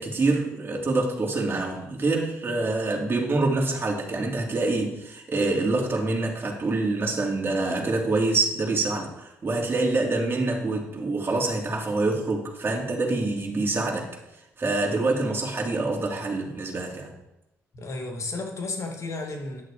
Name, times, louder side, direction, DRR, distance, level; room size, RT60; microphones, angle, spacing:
voice 1, 0.0-14.1 14.6-17.1, right 2 dB, 35° right, -1 dB, 3.3 m, -26 dB
voice 2, 17.7-19.6, left 3 dB, 50° left, 2 dB, 2.7 m, -33 dB
11.0 x 6.5 x 5.1 m, 0.91 s
supercardioid pair, 55°, 6 cm